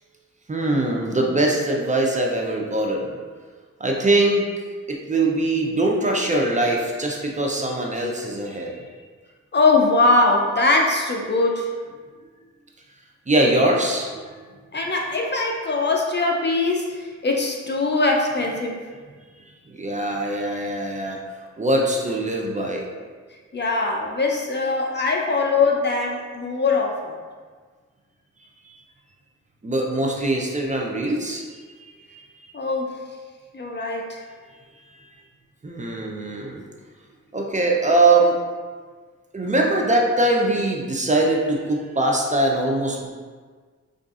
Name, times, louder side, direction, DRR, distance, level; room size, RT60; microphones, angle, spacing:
voice 1, 0.5-3.1 3.8-4.5 4.9-8.8 13.3-14.4 19.7-21.2 21.6-23.0 29.6-32.2 34.9-35.1 35.6-36.6 37.3-38.4 39.3-43.1, right 2 dB, 25° right, 0 dB, 0.5 m, -22 dB
voice 2, 9.5-11.7 14.7-18.8 23.5-27.1 32.5-32.9 33.5-34.2, left 3 dB, 40° left, 0 dB, 0.5 m, -21 dB
4.7 x 2.5 x 2.4 m, 1.5 s
cardioid pair, 65°, 29 cm